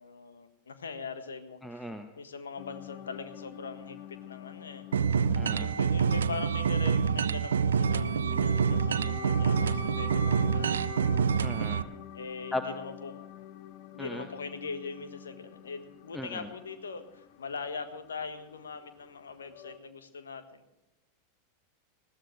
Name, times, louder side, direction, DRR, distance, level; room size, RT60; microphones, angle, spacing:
voice 1, 0.0-4.9 5.6-10.9 12.1-13.3 13.9-20.6, left 5 dB, 70° left, 9 dB, 1.5 m, -41 dB
voice 2, 1.6-2.0 5.3-5.7 11.4-11.8 12.5-12.6 14.0-14.2 16.1-16.4, left 1 dB, 5° left, 7 dB, 1.0 m, -37 dB
sound 1, 2.6-19.8, left 10 dB, 50° left, 0.9 m, -46 dB
sound 2, 4.9-11.8, right 6 dB, 70° right, 0.5 m, -27 dB
20.5 x 15.5 x 3.3 m, 0.96 s
figure-of-eight pair, 90°, 0 cm